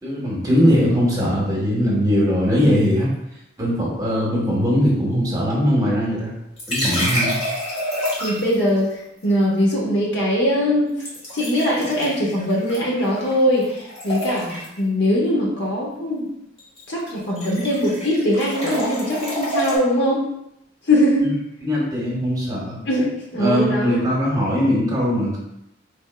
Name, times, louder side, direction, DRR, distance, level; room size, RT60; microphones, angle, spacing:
voice 1, 0.0-3.1 3.6-6.3 6.7-7.3 21.2-21.3 21.6-22.8 23.3-25.4, equal, 20° right, -5 dB, 1.1 m, -20 dB
sound 1, 6.6-8.6 11.0-13.4 13.6-14.8 16.6-16.8 17.1-19.8, equal, 30° left, 1.3 m, -27 dB
voice 2, 8.2-8.9 9.2-10.9 11.3-16.3 16.9-20.2 20.9-21.3 22.8-24.0, equal, 60° left, -4 dB, 1.0 m, -21 dB
4.4 x 3.4 x 2.2 m, 0.82 s
head